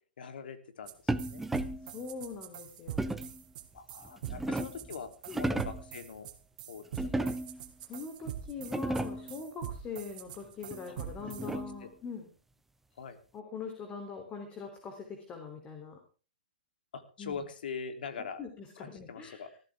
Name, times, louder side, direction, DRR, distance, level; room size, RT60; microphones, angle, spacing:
voice 1, 0.2-1.4 3.7-5.1 5.4-6.3 6.7-7.3 10.8-10.9 11.4-11.9 13.0-13.2 16.9-18.4 18.8-19.5, left 6 dB, 70° left, 8 dB, 3.1 m, -43 dB
sound 1, 0.9-1.0 1.2-11.5, right 11 dB, 50° right, 2.6 m, -43 dB
sound 2, 1.1-1.9 3.0-3.4 4.0-4.9 5.3-5.9 7.0-7.7 8.2-8.3 8.6-9.3 10.7-11.9, right 2 dB, 5° right, 0.9 m, -34 dB
voice 2, 1.9-3.3 4.2-4.6 5.3-5.4 7.0-7.1 7.8-12.3 13.3-16.0 17.2-17.4 18.2-19.4, left 5 dB, 20° left, 4 dB, 3.3 m, -43 dB
19.5 x 14.5 x 3.6 m, 0.36 s
hypercardioid pair, 135°, 5 cm